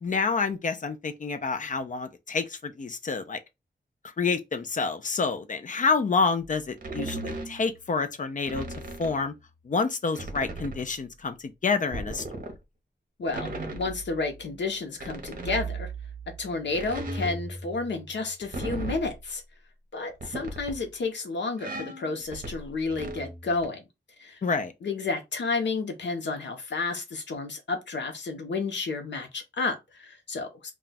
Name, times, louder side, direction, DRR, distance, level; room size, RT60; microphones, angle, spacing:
voice 1, 0.0-3.4 4.2-8.6 9.0-9.3 9.6-12.2 24.4-24.7, left 4 dB, 45° left, 0.5 m, -28 dB
sound 1, 6.4-6.5 6.8-7.9 8.4-9.2 10.1-11.0 11.9-12.6 13.2-14.6 15.0-19.2 20.1-20.9 21.6-23.7, right 2 dB, 50° right, 0.8 m, -37 dB
voice 2, 13.2-15.9 16.4-19.4 19.9-23.8 24.2-24.4 24.8-30.7, left 3 dB, 80° left, 0.8 m, -31 dB
2.4 x 2.3 x 3.9 m
wide cardioid pair, 130°, 18 cm